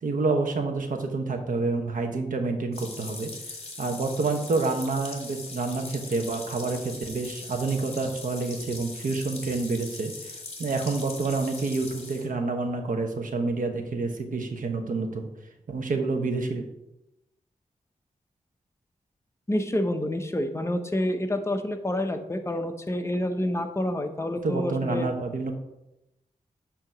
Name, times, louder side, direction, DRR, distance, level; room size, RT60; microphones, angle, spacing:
voice 1, 0.0-3.3 3.8-15.3 15.7-16.7 24.4-25.5, right 3 dB, 70° right, 5 dB, 1.0 m, -28 dB
sound 1, 2.7-12.3, left 3 dB, 45° left, 1.6 m, -41 dB
voice 2, 19.5-25.1, left 1 dB, 20° left, 6 dB, 0.8 m, -28 dB
7.9 x 2.9 x 6.0 m, 0.91 s
cardioid pair, 70°, 14 cm